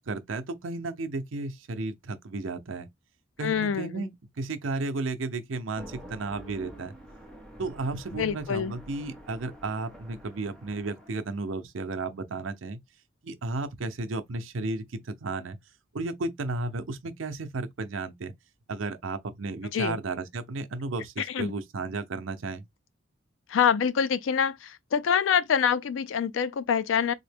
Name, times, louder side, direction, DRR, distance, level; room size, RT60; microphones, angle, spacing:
voice 1, 0.1-2.9 3.4-4.1 4.4-7.0 7.6-12.8 13.2-15.6 15.9-18.3 18.7-22.6, right 3 dB, 80° right, 0.6 m, -33 dB
voice 2, 3.4-4.1 8.1-8.7 19.7-20.0 21.2-21.5 23.5-27.1, left 7 dB, 75° left, 0.4 m, -26 dB
sound 1, 5.7-11.3, equal, 5° left, 0.9 m, -47 dB
3.7 x 2.0 x 3.4 m
head